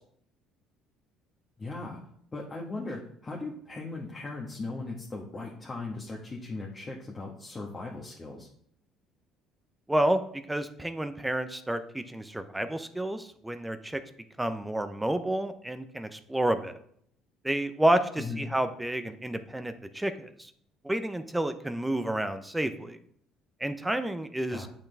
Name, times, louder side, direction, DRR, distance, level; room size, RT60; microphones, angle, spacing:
voice 1, 1.6-2.0 2.3-8.5 18.2-18.5 24.5-24.7, left 3 dB, 25° left, -3 dB, 1.4 m, -38 dB
voice 2, 9.9-10.2 10.5-14.0 14.4-16.7 17.4-20.5 20.8-23.0 23.6-24.7, right 1 dB, 10° right, 10 dB, 0.7 m, -30 dB
8.7 x 5.9 x 3.4 m, 0.65 s
supercardioid pair, 95°, 0 cm